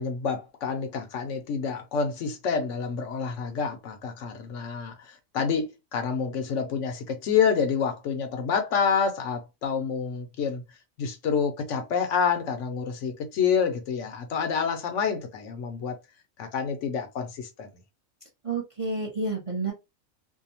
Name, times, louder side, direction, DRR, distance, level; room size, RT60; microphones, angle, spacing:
voice 1, 0.0-10.6 11.0-16.0 16.4-17.7, left 6 dB, 70° left, 0.9 m, -28 dB
voice 2, 18.4-19.7, right 3 dB, 30° right, 0.7 m, -29 dB
2.6 x 2.2 x 2.8 m
omnidirectional pair, 1.4 m